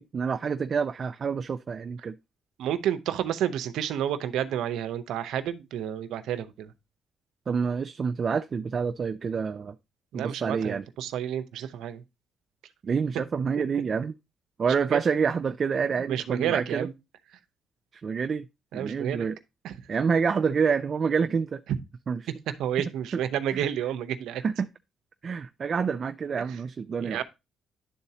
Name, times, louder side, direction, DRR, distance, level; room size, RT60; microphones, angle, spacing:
voice 1, 0.0-2.1 7.5-9.8 10.1-10.8 12.8-14.1 14.6-16.9 18.0-18.5 18.7-19.4 19.9-21.6 22.1-22.2 23.5-23.6 24.4-24.7 25.2-27.2, right 6 dB, 45° right, 0.4 m, -27 dB
voice 2, 2.6-6.7 10.1-12.0 14.9-15.0 16.0-16.9 18.7-19.3 19.6-19.7 22.6-24.4 26.4-26.5 27.0-27.2, right 10 dB, 85° right, 0.7 m, -30 dB
11.0 x 4.0 x 2.8 m
cardioid pair, 90°, 0 cm